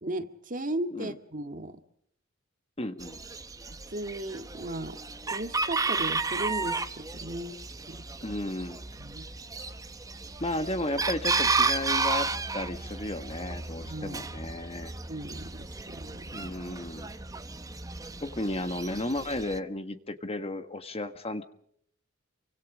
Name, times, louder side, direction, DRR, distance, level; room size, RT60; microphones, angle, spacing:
voice 1, 0.0-1.8 3.9-5.0 5.3-7.6 7.9-8.0 9.0-9.3 13.9-14.3 15.1-16.5, right 1 dB, 40° right, 7 dB, 2.0 m, -36 dB
voice 2, 2.8-3.2 8.2-8.8 10.4-14.9 16.3-17.1 18.2-21.4, left 1 dB, 30° left, 9 dB, 1.6 m, -34 dB
Chicken rooster, 3.0-19.6, right 4 dB, 15° right, 1.0 m, -33 dB
28.5 x 25.0 x 5.1 m, 0.68 s
head